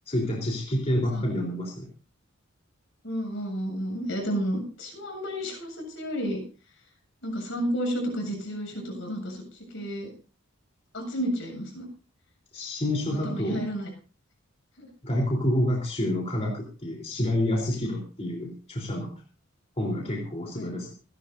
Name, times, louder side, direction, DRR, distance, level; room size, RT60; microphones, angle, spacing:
voice 1, 0.1-1.9 12.5-13.6 15.0-19.1 19.8-20.9, left 1 dB, 30° left, -1 dB, 4.1 m, -28 dB
voice 2, 3.0-6.4 7.2-9.4 9.7-10.1 10.9-11.9 13.2-13.9 14.8-14.9 20.5-20.7, equal, 70° left, 2 dB, 7.7 m, -31 dB
29.0 x 11.5 x 2.8 m, 0.36 s
head